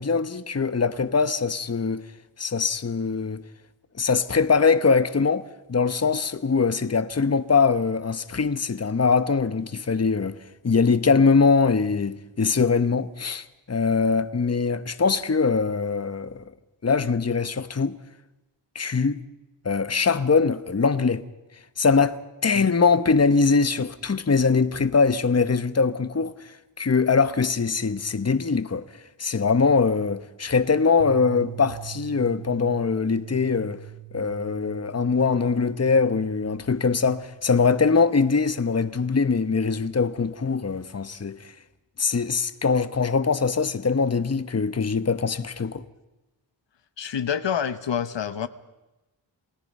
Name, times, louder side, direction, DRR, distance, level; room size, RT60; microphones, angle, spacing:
voice 1, 0.0-2.0 2.4-3.4 4.0-10.3 10.6-16.4 16.8-18.0 18.7-19.2 19.6-21.2 21.8-26.4 26.8-28.8 29.2-33.8 34.1-41.5 42.0-45.8, left 5 dB, 35° left, 1.1 m, -22 dB
sound 1, 31.0-37.2, right 14 dB, 55° right, 3.0 m, -42 dB
voice 2, 47.0-48.5, left 8 dB, 75° left, 1.1 m, -27 dB
28.5 x 17.5 x 5.5 m
cardioid pair, 50°, 44 cm